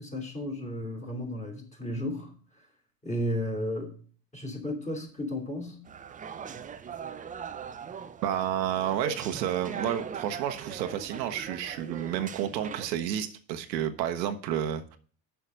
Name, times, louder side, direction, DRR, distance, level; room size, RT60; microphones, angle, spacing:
voice 1, 0.0-2.3 3.0-3.9 4.3-5.8, left 1 dB, 15° left, 3 dB, 2.9 m, -33 dB
sound 1, 5.8-12.9, right 7 dB, 15° right, 0.4 m, -40 dB
voice 2, 8.2-15.0, right 10 dB, 85° right, 8 dB, 1.1 m, -30 dB
7.0 x 5.7 x 7.5 m, 0.43 s
hypercardioid pair, 90°, 49 cm